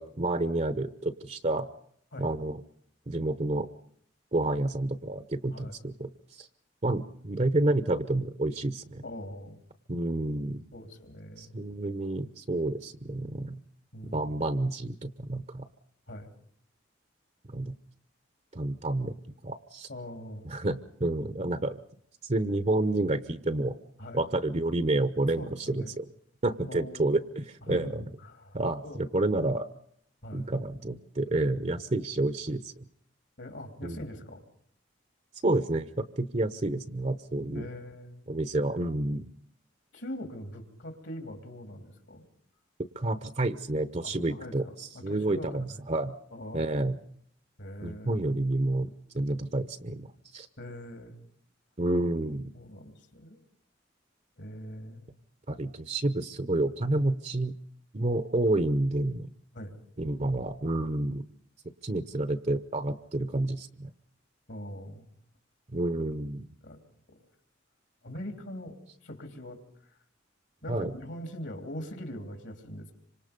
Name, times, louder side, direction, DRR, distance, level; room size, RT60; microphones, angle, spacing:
voice 1, 0.0-1.7 2.2-2.6 3.1-3.7 4.3-6.5 6.8-9.0 9.9-10.6 11.4-13.6 14.1-15.7 17.5-17.7 18.5-19.1 19.4-19.9 20.4-21.8 22.2-23.7 24.1-26.0 26.4-28.0 28.5-29.7 30.3-32.8 33.8-34.0 35.4-37.7 38.3-39.3 43.0-46.1 46.5-47.0 47.8-48.9 49.1-50.1 50.3-50.5 51.8-52.5 55.5-57.5 57.9-59.3 60.0-61.2 61.8-63.9 65.7-66.5 70.7-70.9, right 2 dB, 35° right, 12 dB, 0.9 m, -29 dB
voice 2, 9.0-9.6 10.7-11.6 13.9-14.2 16.1-16.3 19.9-20.5 24.0-24.2 25.4-26.0 26.7-27.2 27.7-28.6 28.8-29.0 30.2-30.4 31.9-32.1 33.4-34.4 37.5-38.3 39.9-42.3 44.0-45.8 46.3-46.9 47.6-48.2 50.6-51.2 52.5-53.4 54.4-55.1 59.5-59.7 64.5-65.1 66.6-66.8 68.0-69.6 70.6-72.9, equal, 70° left, 5 dB, 3.4 m, -42 dB
27.0 x 25.5 x 5.3 m, 0.67 s
head